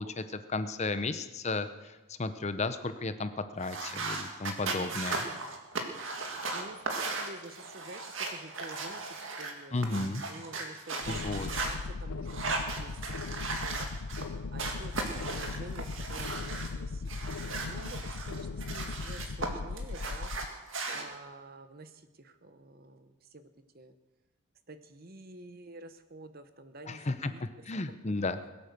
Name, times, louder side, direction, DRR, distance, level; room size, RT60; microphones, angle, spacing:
voice 1, 0.0-5.2 9.7-10.2 11.1-11.5 26.9-28.4, left 3 dB, 30° left, 11 dB, 0.6 m, -34 dB
sound 1, 3.6-11.7 12.3-14.3 14.6-16.7 17.1-19.5 19.8-21.0, right 3 dB, 60° right, 2.0 m, -37 dB
voice 2, 4.6-5.6 6.5-9.8 10.3-12.9 13.2-13.9 14.5-17.1 17.7-20.3 20.9-23.5 23.7-23.9 24.7-27.4 28.1-28.2 28.4-28.5, right 2 dB, 40° right, 10 dB, 0.9 m, -49 dB
sound 2, 11.0-20.5, left 4 dB, 90° left, 0.5 m, -38 dB
21.0 x 8.8 x 6.7 m, 1.1 s
head